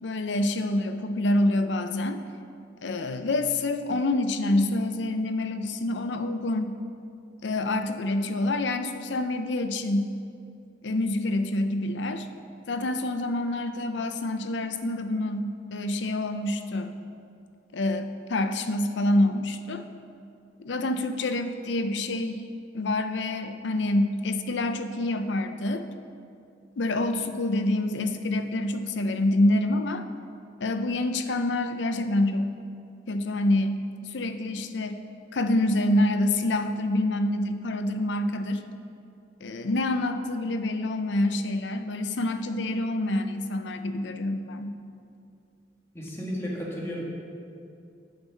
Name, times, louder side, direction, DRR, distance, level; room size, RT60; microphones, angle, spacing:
voice 1, 0.0-2.2 2.8-6.7 7.4-10.1 10.8-12.3 12.7-16.9 17.7-19.8 20.6-22.4 22.7-25.9 26.8-30.0 30.6-32.5 33.1-35.0 35.3-38.6 39.4-44.7, left 1 dB, 75° left, 8 dB, 0.6 m, -27 dB
voice 2, 45.9-47.0, equal, 15° left, -4 dB, 1.7 m, -33 dB
8.7 x 5.5 x 7.2 m, 2.5 s
head